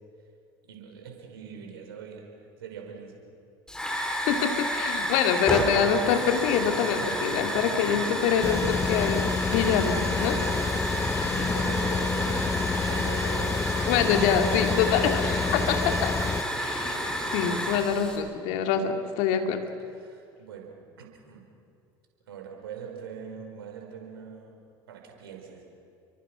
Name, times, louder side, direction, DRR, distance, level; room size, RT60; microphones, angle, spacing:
voice 1, 0.6-2.3 2.6-3.1 11.3-13.6 15.5-16.0 17.0-17.7 19.9-21.5 22.3-24.6 24.9-25.7, right 6 dB, 80° right, 2 dB, 5.2 m, -42 dB
Hiss / Fire, 3.7-18.2, equal, 5° left, 5.2 m, -30 dB
voice 2, 4.2-10.4 13.9-16.1 16.6-17.0 17.3-19.6, left 8 dB, 65° left, 5 dB, 2.5 m, -25 dB
sound 1, 8.4-16.4, left 5 dB, 20° left, 0.8 m, -29 dB
29.5 x 23.5 x 6.3 m, 2.5 s
hypercardioid pair, 70°, 12 cm